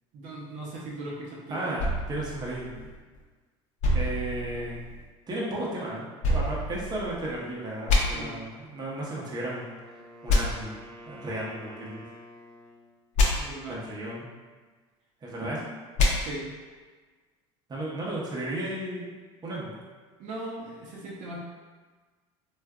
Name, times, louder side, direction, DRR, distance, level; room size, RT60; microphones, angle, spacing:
voice 1, 0.1-1.8 8.1-8.4 13.3-13.8 16.2-16.5 20.2-21.4, right 2 dB, 60° right, -5 dB, 0.8 m, -39 dB
voice 2, 1.5-2.9 3.9-4.8 5.3-9.7 10.2-12.0 13.7-14.3 15.2-15.7 17.7-19.1 19.4-19.8, right 1 dB, 25° right, -5 dB, 0.8 m, -34 dB
sound 1, 1.8-3.2 3.8-5.0 6.2-7.4 7.9-8.0 10.3-10.4 13.2-13.3 16.0-16.1, left 2 dB, 55° left, 0.7 m, -26 dB
Wind instrument woodwind instrument, 9.1-13.0, equal, 5° left, 0.5 m, -49 dB
3.5 x 2.5 x 2.4 m, 1.4 s
supercardioid pair, 90°, 15 cm